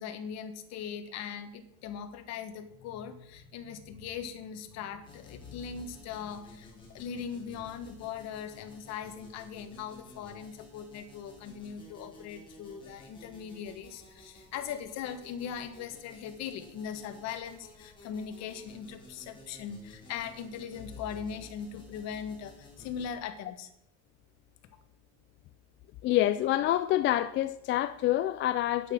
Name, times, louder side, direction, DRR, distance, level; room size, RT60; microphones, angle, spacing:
voice 1, 0.0-23.7, left 7 dB, 60° left, 1.4 m, -40 dB
sound 1, 5.0-23.1, left 2 dB, 15° left, 3.6 m, -54 dB
voice 2, 26.0-28.9, left 13 dB, 40° left, 0.4 m, -27 dB
9.2 x 9.0 x 6.1 m
cardioid pair, 165°, 30 cm